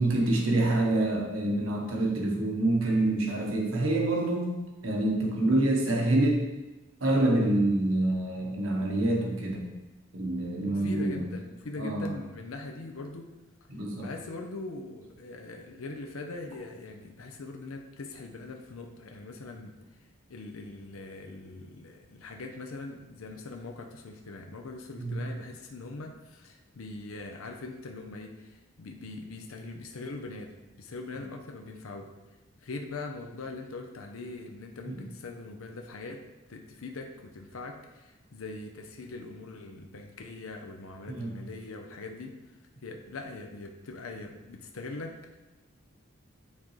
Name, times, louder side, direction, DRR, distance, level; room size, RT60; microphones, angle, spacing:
voice 1, 0.0-4.5 4.8-6.5 7.0-9.7 10.1-11.2 11.8-12.1 13.7-14.1 25.0-25.2 34.9-35.0 41.1-41.3, right 2 dB, 80° right, 0 dB, 1.2 m, -26 dB
voice 2, 10.6-13.3 14.0-19.8 20.3-32.1 32.6-36.2 36.5-42.4 42.8-45.4, left 3 dB, 85° left, 3 dB, 0.6 m, -41 dB
9.2 x 3.7 x 3.2 m, 1.1 s
head